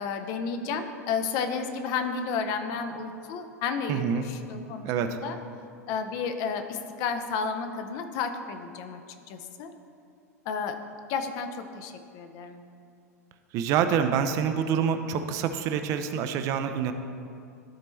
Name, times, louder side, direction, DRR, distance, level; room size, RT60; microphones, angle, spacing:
voice 1, 0.0-5.4 5.9-9.0 9.3-9.7 10.4-10.8 11.1-12.6, left 5 dB, 45° left, 7 dB, 0.6 m, -32 dB
voice 2, 3.9-4.2 4.9-5.2 13.5-16.9, right 8 dB, 40° right, 8 dB, 0.4 m, -26 dB
12.5 x 4.3 x 3.1 m, 2.4 s
figure-of-eight pair, 90°, 9 cm